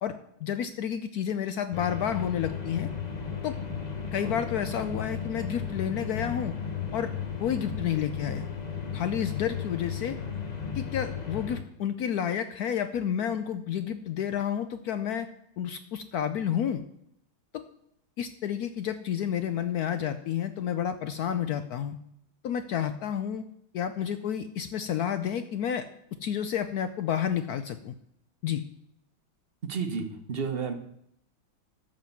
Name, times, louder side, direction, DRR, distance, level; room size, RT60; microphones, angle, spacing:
voice 1, 0.4-2.9 3.4-3.6 4.1-6.5 6.9-7.1 7.4-8.5 8.9-10.2 10.7-15.3 15.6-16.8 17.5-17.6 18.2-22.0 22.4-23.4 23.7-25.9 26.2-27.9 28.4-28.6, left 9 dB, 90° left, 10 dB, 0.8 m, -30 dB
sound 1, 1.7-11.6, left 6 dB, 45° left, 0.5 m, -35 dB
voice 2, 29.7-30.7, right 5 dB, 40° right, 6 dB, 0.8 m, -31 dB
13.0 x 5.3 x 7.1 m, 0.74 s
omnidirectional pair, 2.3 m